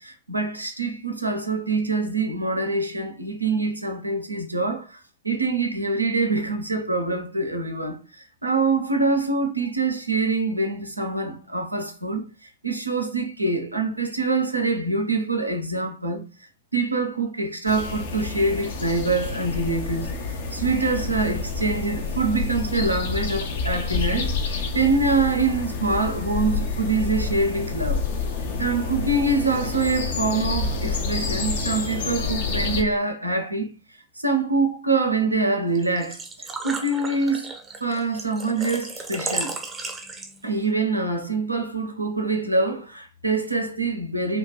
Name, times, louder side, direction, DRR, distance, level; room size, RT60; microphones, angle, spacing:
voice 1, 0.0-16.2 16.7-28.0 28.6-33.7 34.2-37.5 37.8-39.6 40.4-44.4, right 3 dB, 85° right, 0.4 m, -25 dB
sound 1, 17.7-32.8, left 4 dB, 60° left, 0.6 m, -28 dB
Engine / Trickle dribble / Fill (with liquid), 35.7-40.6, right 3 dB, 20° right, 0.6 m, -34 dB
2.8 x 2.2 x 2.9 m
figure-of-eight pair, 90°, 0 cm